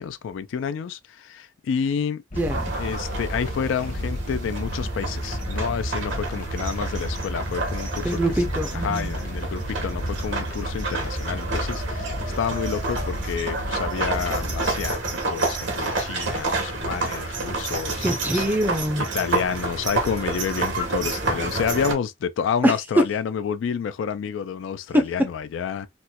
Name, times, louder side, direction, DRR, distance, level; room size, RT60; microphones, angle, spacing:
voice 1, 0.0-2.2 2.7-8.3 8.7-18.6 19.0-25.9, left 7 dB, 80° left, 0.3 m, -29 dB
sound 1, 2.3-14.9, equal, 45° left, 0.9 m, -32 dB
voice 2, 2.4-2.7 8.0-9.1 18.0-19.1 22.6-22.7 24.9-25.0, equal, 10° right, 0.5 m, -23 dB
sound 2, 2.4-21.9, right 3 dB, 75° right, 1.1 m, -29 dB
4.2 x 2.1 x 2.2 m
head